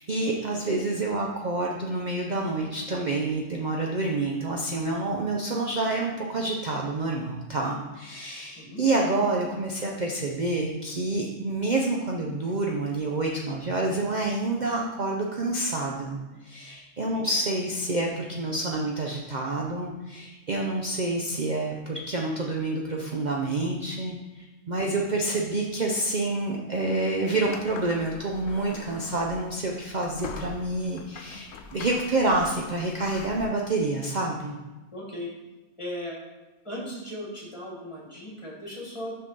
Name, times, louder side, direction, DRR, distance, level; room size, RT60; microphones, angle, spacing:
voice 1, 0.0-34.5, right 2 dB, 60° right, -1 dB, 0.4 m, -28 dB
voice 2, 17.0-17.3 24.9-25.1 34.9-35.3 35.8-36.2 36.6-39.2, left 1 dB, 20° left, -3 dB, 1.6 m, -37 dB
sound 1, 27.4-33.5, left 5 dB, 65° left, 0.9 m, -43 dB
6.5 x 6.0 x 3.9 m, 1.1 s
omnidirectional pair, 1.6 m